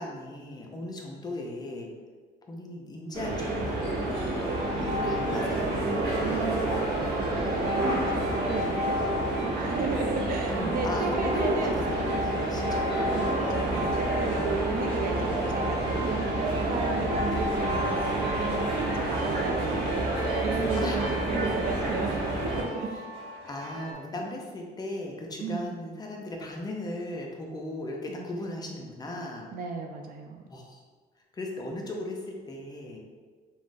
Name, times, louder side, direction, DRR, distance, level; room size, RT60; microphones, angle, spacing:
voice 1, 0.0-1.9 2.4-4.1 4.7-5.9 10.5-13.2 13.7-14.0 20.7-21.0 23.5-29.5 30.5-30.8 31.3-33.0, left 1 dB, 25° left, 0 dB, 0.4 m, -36 dB
sound 1, 3.1-22.6, right 2 dB, 90° right, 0.8 m, -29 dB
sound 2, 4.4-23.9, left 2 dB, 35° right, 0.8 m, -36 dB
voice 2, 6.2-6.6 7.2-11.7 13.1-22.2 22.6-22.9 25.4-25.7 28.1-28.5 29.5-30.4, right 4 dB, 60° right, 3 dB, 0.4 m, -35 dB
3.6 x 2.0 x 2.5 m, 1.5 s
cardioid pair, 110°, 17 cm